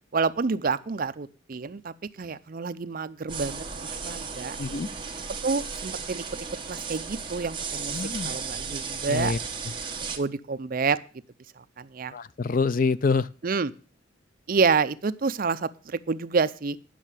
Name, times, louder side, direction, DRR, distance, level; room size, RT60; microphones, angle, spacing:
voice 1, 0.1-4.6 5.4-6.2 6.7-9.3 10.2-11.0 11.6-12.1 13.4-13.7 14.5-16.8, right 4 dB, 45° right, 0.5 m, -28 dB
sound 1, 3.3-10.2, right 5 dB, 25° right, 1.1 m, -35 dB
voice 2, 4.6-4.9 7.9-8.3 9.1-9.4 12.1-13.3, left 4 dB, 45° left, 0.5 m, -26 dB
10.0 x 6.5 x 7.4 m
head